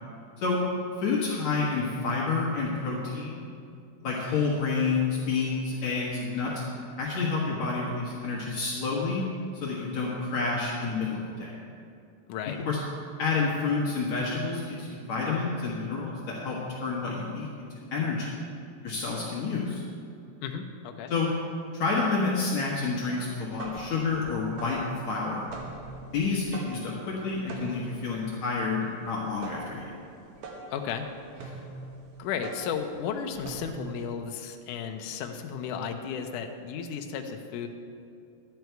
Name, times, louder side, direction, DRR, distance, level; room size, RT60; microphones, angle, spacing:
voice 1, 1.0-3.4 4.0-6.6 7.0-9.3 9.5-11.6 12.7-12.8 13.2-18.4 18.8-19.8 21.1-21.3 21.7-25.5 26.1-29.8, left 4 dB, 60° left, -5 dB, 2.3 m, -29 dB
voice 2, 20.4-21.1 30.7-31.1 31.4-31.7 32.2-37.7, left 7 dB, 75° left, 4 dB, 2.0 m, -34 dB
sound 1, 23.5-34.1, right 2 dB, 65° right, 2.5 m, -43 dB
11.5 x 9.4 x 4.6 m, 2.5 s
omnidirectional pair, 4.3 m